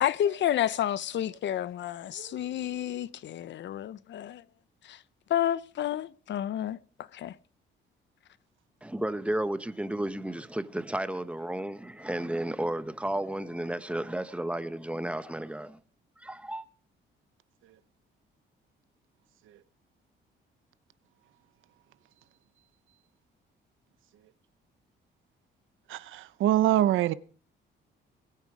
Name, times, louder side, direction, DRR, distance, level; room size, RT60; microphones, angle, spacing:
voice 1, 0.0-4.4 4.8-5.0 5.3-6.8 7.1-7.3, left 11 dB, 65° left, 0.7 m, -30 dB
voice 2, 8.8-15.8 16.2-16.6, right 1 dB, 5° right, 1.1 m, -33 dB
voice 3, 25.9-27.1, right 13 dB, 80° right, 0.8 m, -24 dB
21.0 x 9.2 x 5.0 m
cardioid pair, 90°, 20 cm